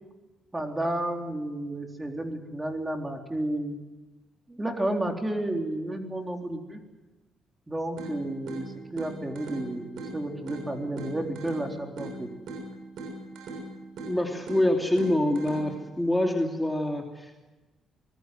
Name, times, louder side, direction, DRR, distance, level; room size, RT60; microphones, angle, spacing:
voice 1, 0.5-3.8 4.5-6.8 7.7-12.3, right 1 dB, 15° right, 3 dB, 3.9 m, -32 dB
sound 1, 8.0-16.0, right 2 dB, 80° right, 6.8 m, -41 dB
voice 2, 14.0-17.5, left 1 dB, 5° left, 1 dB, 2.8 m, -26 dB
25.5 x 20.0 x 7.9 m, 1.1 s
cardioid pair, 90°, 0 cm